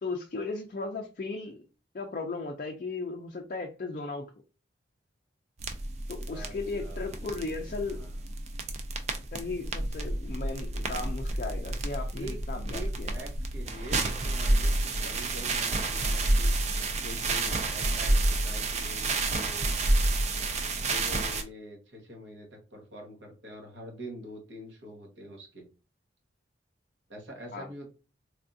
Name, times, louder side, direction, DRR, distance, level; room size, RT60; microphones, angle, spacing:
voice 1, 0.0-1.6 1.9-4.2 6.1-8.0 9.3-13.1 27.5-27.7, left 3 dB, 45° left, 2 dB, 0.4 m, -36 dB
sound 1, 5.6-21.4, right 2 dB, 35° right, 0.4 m, -29 dB
voice 2, 6.8-8.2 12.1-12.4 12.6-16.5 17.0-20.0 20.8-25.7 27.1-27.9, equal, 70° right, 0 dB, 1.1 m, -45 dB
3.4 x 2.4 x 2.6 m, 0.33 s
head